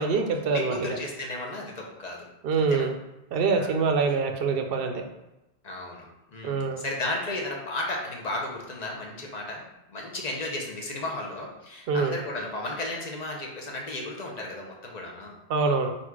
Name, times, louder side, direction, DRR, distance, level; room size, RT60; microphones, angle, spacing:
voice 1, 0.0-1.0 2.4-2.9 3.3-5.0 6.4-6.8 11.9-12.2 15.5-15.9, right 4 dB, 65° right, 5 dB, 0.7 m, -25 dB
voice 2, 0.5-2.2 2.7-2.9 3.5-3.9 5.6-9.6 9.9-15.4, left 2 dB, 40° left, 0 dB, 0.8 m, -34 dB
4.0 x 2.4 x 4.5 m, 0.93 s
omnidirectional pair, 1.1 m